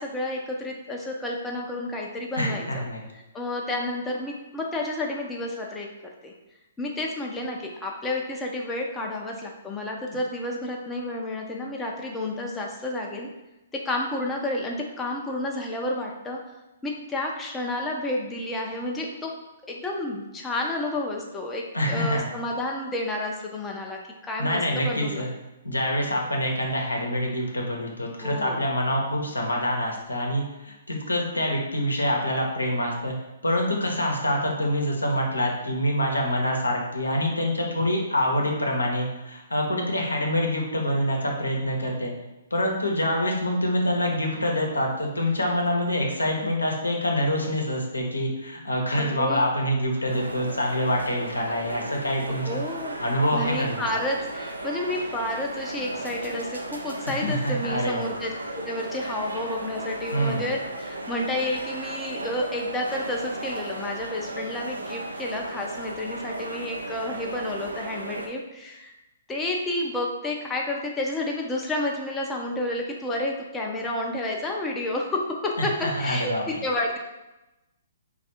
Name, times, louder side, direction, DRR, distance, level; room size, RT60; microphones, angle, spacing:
voice 1, 0.0-2.8 3.3-5.9 6.2-6.3 6.8-13.3 13.7-16.4 16.8-19.3 19.7-25.3 28.2-28.6 49.0-49.5 52.4-53.0 53.3-58.3 58.6-68.9 69.3-77.0, left 1 dB, 10° left, -1 dB, 0.5 m, -30 dB
voice 2, 2.3-3.0 21.7-22.2 24.4-25.3 25.6-33.1 33.4-42.1 42.5-52.6 53.0-53.8 57.1-58.1 60.1-60.5 75.6-76.4, equal, 85° left, 0 dB, 0.8 m, -26 dB
sound 1, 50.1-68.3, right 2 dB, 85° right, 0.5 m, -35 dB
3.3 x 2.4 x 4.2 m, 1.0 s
figure-of-eight pair, 125°, 0 cm